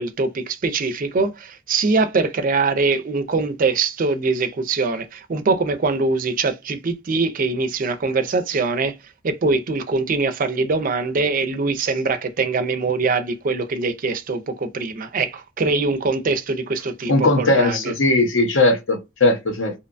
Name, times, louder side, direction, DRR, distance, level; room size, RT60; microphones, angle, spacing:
voice 1, 0.0-17.9, right 3 dB, 40° right, 0.4 m, -23 dB
voice 2, 17.1-19.7, left 2 dB, 60° left, 0.7 m, -18 dB
2.7 x 2.1 x 2.5 m
head